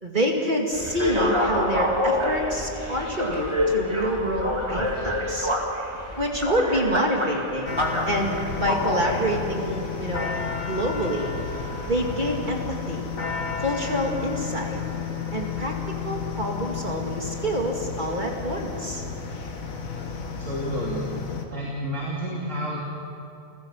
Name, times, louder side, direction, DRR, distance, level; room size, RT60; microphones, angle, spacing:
voice 1, 0.0-5.5 6.2-7.8 8.1-10.3 10.7-11.3 11.9-13.1 13.6-14.8 15.3-15.7 16.0-19.0, equal, 35° right, 0 dB, 2.5 m, -27 dB
sound 1, 0.7-12.6, left 1 dB, 20° right, 2.4 m, -28 dB
sound 2, 7.7-21.5, left 5 dB, 90° left, 2.1 m, -32 dB
voice 2, 20.4-21.1 21.5-22.8, equal, 70° right, -4 dB, 3.3 m, -30 dB
29.5 x 15.5 x 7.4 m, 2.7 s
omnidirectional pair, 1.4 m